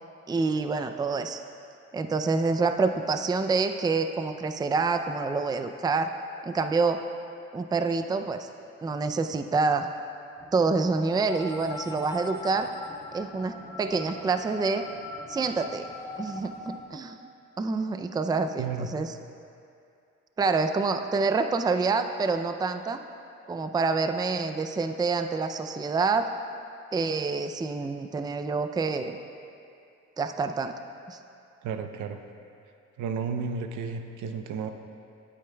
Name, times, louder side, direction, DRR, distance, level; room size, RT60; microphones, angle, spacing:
voice 1, 0.3-1.4 1.9-6.1 6.4-7.0 7.5-8.5 8.8-9.9 10.5-12.7 13.1-14.9 15.3-15.9 16.2-17.2 17.6-19.1 20.4-23.0 23.5-26.3 26.9-29.2 30.2-30.7 31.1-31.2, right 4 dB, 15° right, 7 dB, 0.4 m, -27 dB
sound 1, 10.4-16.9, left 1 dB, 10° left, 0.9 m, -41 dB
voice 2, 18.6-18.9 31.6-32.2 33.0-34.7, right 5 dB, 80° right, 7 dB, 0.8 m, -32 dB
19.0 x 8.5 x 2.3 m, 2.5 s
cardioid pair, 90°, 30 cm